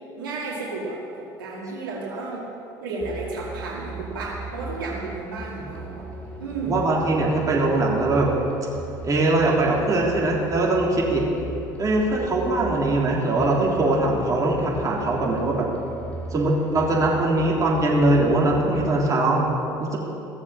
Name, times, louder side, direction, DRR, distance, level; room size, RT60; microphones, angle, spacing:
voice 1, 0.2-2.5 2.8-6.0 6.4-6.9, right 3 dB, 85° right, -4 dB, 2.2 m, -32 dB
sound 1, 3.0-19.0, right 3 dB, 10° left, 2.7 m, -38 dB
voice 2, 6.7-8.3 9.0-11.2 11.8-15.7 16.3-19.5 19.8-20.0, right 2 dB, 30° right, -4 dB, 3.5 m, -21 dB
16.0 x 7.2 x 7.5 m, 2.9 s
hypercardioid pair, 70°, 11 cm